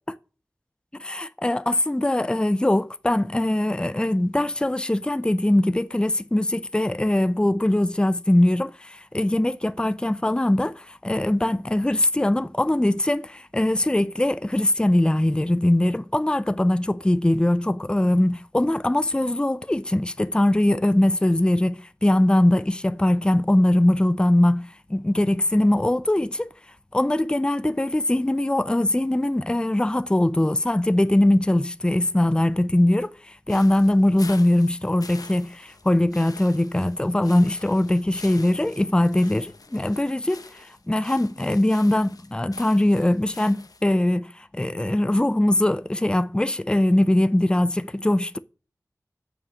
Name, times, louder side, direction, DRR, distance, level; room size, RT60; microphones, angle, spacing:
voice 1, 1.0-26.5 26.9-48.4, left 1 dB, 15° left, 0.5 m, -21 dB
sound 1, 33.5-43.8, left 4 dB, 85° left, 0.8 m, -46 dB
7.2 x 5.9 x 7.5 m
wide cardioid pair, 70°, 6 cm